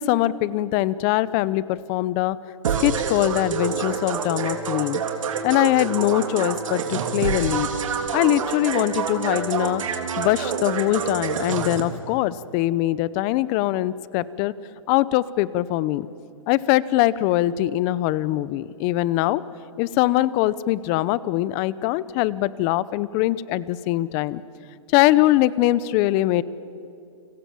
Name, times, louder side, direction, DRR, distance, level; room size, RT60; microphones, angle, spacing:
voice 1, 0.0-2.4 2.8-5.0 5.4-7.7 8.1-14.5 14.9-16.1 16.5-19.4 19.8-24.4 24.9-26.4, left 15 dB, 30° left, 19 dB, 0.8 m, -22 dB
sound 1, 2.6-11.8, right 6 dB, 70° right, 3.2 m, -27 dB
29.5 x 25.5 x 7.2 m, 2.7 s
hypercardioid pair, 145°, 17 cm